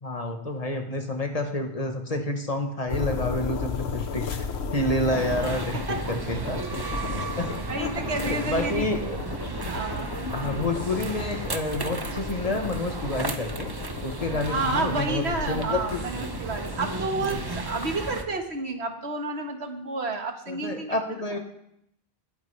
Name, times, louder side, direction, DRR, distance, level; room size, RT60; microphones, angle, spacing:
voice 1, 0.0-4.5 4.7-6.6 7.4-7.5 7.8-7.9 8.2-9.2 10.3-13.7 14.0-16.0 20.5-21.4, left 1 dB, 35° left, 4 dB, 1.2 m, -29 dB
sound 1, 2.9-17.0, left 6 dB, 80° left, 1.2 m, -35 dB
sound 2, 5.1-18.2, right 3 dB, 25° right, 0.8 m, -34 dB
voice 2, 5.7-6.1 7.2-7.3 7.7-8.8 9.7-10.2 14.5-20.9, right 2 dB, 85° right, 4 dB, 1.7 m, -30 dB
19.5 x 9.4 x 3.3 m, 0.77 s
omnidirectional pair, 1.1 m